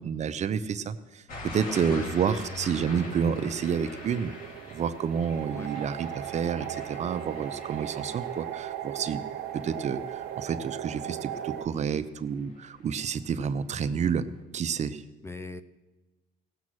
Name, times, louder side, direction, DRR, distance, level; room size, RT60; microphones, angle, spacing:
voice 1, 0.0-4.3 4.7-9.2 9.5-14.2 14.5-15.0, right 7 dB, 40° right, 12 dB, 0.7 m, -29 dB
sound 1, 1.3-12.1 12.5-12.9, left 2 dB, 55° left, 2.9 m, -44 dB
sound 2, 1.6-11.7, right 12 dB, 90° right, 0.8 m, -38 dB
voice 2, 1.7-2.1 5.5-5.7 15.2-15.6, left 2 dB, 15° left, 12 dB, 0.6 m, -40 dB
17.5 x 7.4 x 6.2 m, 1.2 s
cardioid pair, 110°, 17 cm